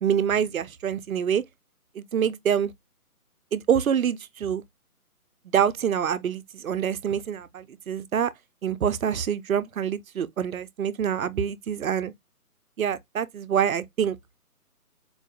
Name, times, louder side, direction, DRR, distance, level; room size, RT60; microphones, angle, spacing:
voice 1, 0.0-1.4 1.9-2.7 3.5-4.6 5.5-8.3 8.6-12.1 12.8-14.2, right 8 dB, 65° right, 0.5 m, -26 dB
4.4 x 2.4 x 2.7 m
hypercardioid pair, 165°, 45 cm